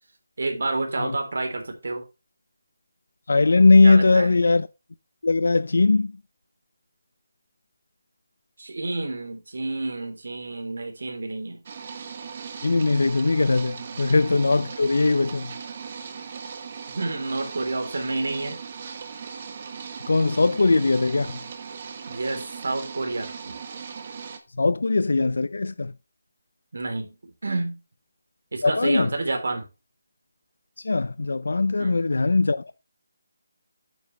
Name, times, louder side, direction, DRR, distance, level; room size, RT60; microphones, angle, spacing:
voice 1, 0.4-2.0 3.8-4.3 8.6-11.6 13.9-14.0 16.9-18.6 22.1-23.6 26.7-27.8 28.5-29.7 31.8-32.0, right 2 dB, 65° right, 3.4 m, -29 dB
voice 2, 3.3-4.7 5.2-6.2 12.6-15.5 20.1-21.4 24.5-25.9 28.6-29.1 30.8-32.8, left 3 dB, 75° left, 0.5 m, -20 dB
sound 1, 11.7-24.4, right 6 dB, 30° right, 1.3 m, -38 dB
9.4 x 7.1 x 3.2 m
hypercardioid pair, 175°, 0 cm